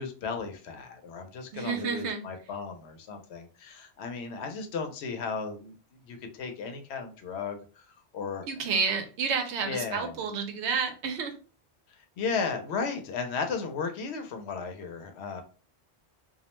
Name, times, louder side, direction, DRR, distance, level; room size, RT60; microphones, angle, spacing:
voice 1, 0.0-5.7 6.1-7.6 8.1-8.5 9.6-10.2 12.2-15.4, left 5 dB, 75° left, 5 dB, 0.8 m, -35 dB
voice 2, 1.5-2.2 8.5-11.3, right 5 dB, 85° right, 6 dB, 0.9 m, -30 dB
2.4 x 2.1 x 2.9 m, 0.37 s
omnidirectional pair, 1.1 m